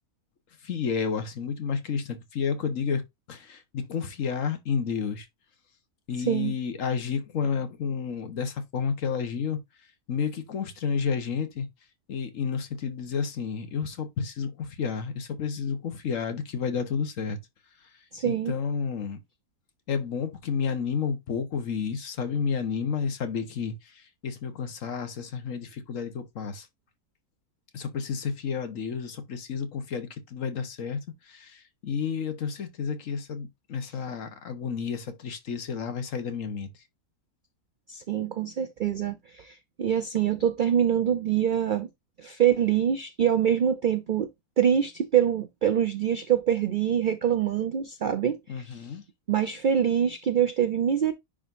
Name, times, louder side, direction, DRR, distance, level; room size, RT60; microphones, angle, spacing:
voice 1, 0.6-5.3 6.1-9.6 10.1-11.7 12.1-17.4 18.2-19.2 19.9-26.7 27.7-31.0 31.2-36.7 48.5-49.0, left 6 dB, 60° left, 1.4 m, -31 dB
voice 2, 18.1-18.5 37.9-41.9 42.2-44.3 44.6-48.9 49.3-51.1, right 9 dB, 85° right, 0.4 m, -25 dB
10.0 x 3.7 x 2.6 m
omnidirectional pair, 1.6 m